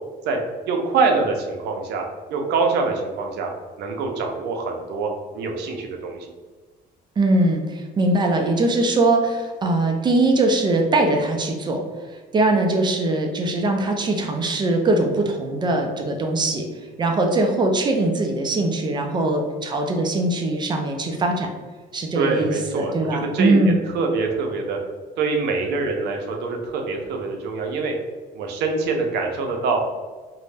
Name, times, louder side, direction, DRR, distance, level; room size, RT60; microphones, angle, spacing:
voice 1, 0.7-2.0 2.3-3.5 3.8-5.1 5.3-6.2 22.1-24.8 25.2-27.9 28.3-29.8, right 4 dB, 80° right, 2 dB, 0.5 m, -24 dB
voice 2, 7.2-11.8 12.3-16.6 17.0-21.5 21.9-23.8, right 2 dB, 25° right, 3 dB, 0.4 m, -21 dB
2.6 x 2.1 x 3.2 m, 1.4 s
cardioid pair, 110°, 17 cm